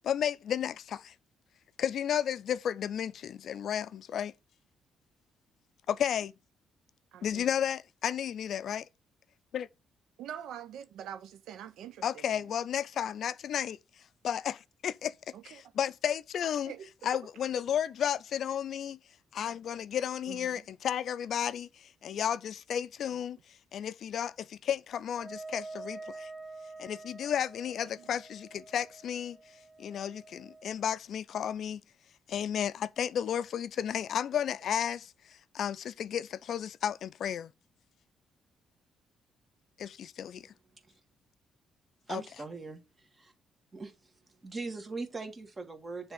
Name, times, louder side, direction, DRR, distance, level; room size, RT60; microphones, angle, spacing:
voice 1, 0.0-1.1 1.8-4.3 5.9-6.3 7.2-8.9 9.5-9.7 12.0-13.8 14.2-15.1 15.4-16.7 17.0-19.0 19.3-23.4 23.7-26.3 26.8-29.4 29.8-31.8 32.3-35.1 35.5-37.5 39.8-40.4 42.1-42.2, left 9 dB, 65° left, 0.4 m, -33 dB
voice 2, 7.1-7.5 10.2-12.4 15.3-15.6 16.7-16.9 20.3-20.7 27.8-28.1, right 9 dB, 80° right, 0.6 m, -45 dB
Wind instrument woodwind instrument, 25.1-30.8, right 3 dB, 15° right, 0.7 m, -47 dB
voice 3, 42.1-43.3 43.7-44.1 44.4-46.1, right 3 dB, 30° right, 1.8 m, -40 dB
6.9 x 3.4 x 5.7 m
cardioid pair, 90°, 0 cm